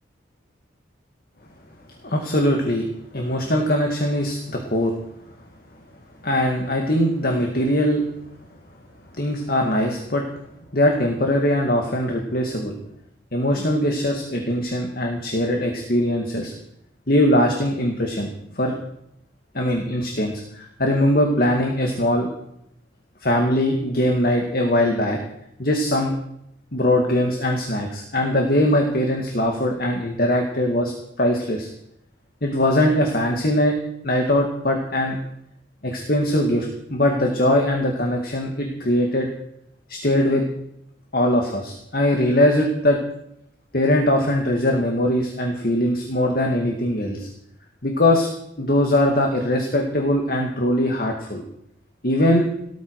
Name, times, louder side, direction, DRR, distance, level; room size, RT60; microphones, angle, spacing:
voice 1, 2.0-2.9 3.1-4.9 6.2-8.0 9.2-10.2 10.7-12.7 13.3-16.5 17.1-18.7 19.5-22.3 23.2-25.2 25.6-26.1 26.7-30.9 31.2-31.7 32.4-33.8 34.0-35.2 35.8-39.3 39.9-40.4 41.1-43.0 43.7-47.3 47.8-48.3 48.6-51.4 52.0-52.5, left 1 dB, 50° left, 2 dB, 2.1 m, -21 dB
18.0 x 13.5 x 4.8 m, 0.78 s
head